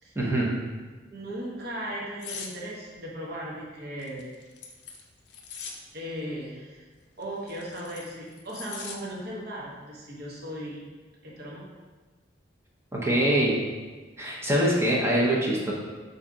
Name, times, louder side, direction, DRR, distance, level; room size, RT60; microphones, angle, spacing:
voice 1, 0.2-0.5 12.9-13.5 14.2-15.7, right 1 dB, 15° right, -4 dB, 0.6 m, -23 dB
voice 2, 1.1-4.3 5.9-6.8 7.2-10.8 11.2-11.7, equal, 55° right, -5 dB, 0.7 m, -37 dB
sound 1, 2.2-2.5 4.0-5.8 7.2-9.0 9.4-9.6, left 6 dB, 65° left, 0.4 m, -41 dB
3.4 x 2.7 x 3.7 m, 1.3 s
head